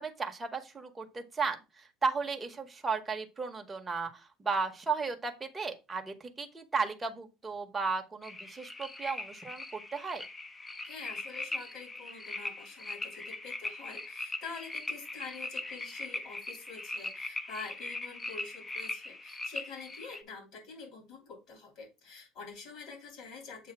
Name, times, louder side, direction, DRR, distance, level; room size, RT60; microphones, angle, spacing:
voice 1, 0.0-10.2, right 4 dB, 15° right, 4 dB, 0.9 m, -35 dB
sound 1, 8.2-20.2, left 2 dB, 15° left, 0.7 m, -40 dB
voice 2, 10.8-23.7, left 4 dB, 55° left, 2 dB, 2.9 m, -46 dB
7.5 x 2.7 x 5.9 m, 0.26 s
cardioid pair, 150°, 0 cm